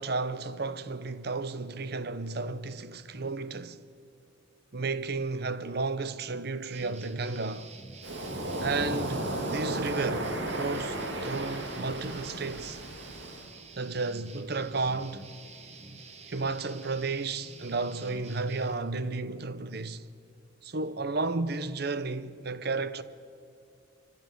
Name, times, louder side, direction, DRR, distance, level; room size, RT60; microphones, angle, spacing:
voice 1, 0.0-3.8 4.7-7.7 8.6-12.8 13.8-15.3 16.3-20.1 20.6-23.0, right 3 dB, 55° right, 0.8 m, -33 dB
sound 1, 6.7-18.7, right 3 dB, 35° right, 1.4 m, -48 dB
Waves surf, 8.0-13.5, right 1 dB, 70° right, 2.5 m, -34 dB
29.0 x 12.0 x 9.3 m
head